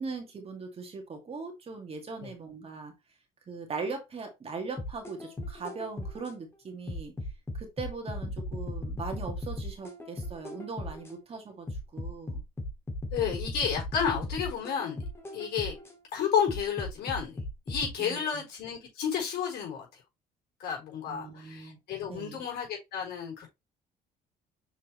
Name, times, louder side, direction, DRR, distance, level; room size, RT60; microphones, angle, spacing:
voice 1, 0.0-2.9 3.5-7.1 7.5-12.4 18.0-18.4 21.1-21.8 22.1-22.4, right 4 dB, 35° right, 2.2 m, -40 dB
sound 1, 4.8-6.3 6.9-11.1 11.7-15.9 16.5-17.9, left 1 dB, 15° left, 2.1 m, -37 dB
voice 2, 13.1-15.0 15.3-15.7 16.1-20.0 20.6-23.5, left 7 dB, 75° left, 4.4 m, -31 dB
7.0 x 4.6 x 3.1 m
cardioid pair, 110°, 17 cm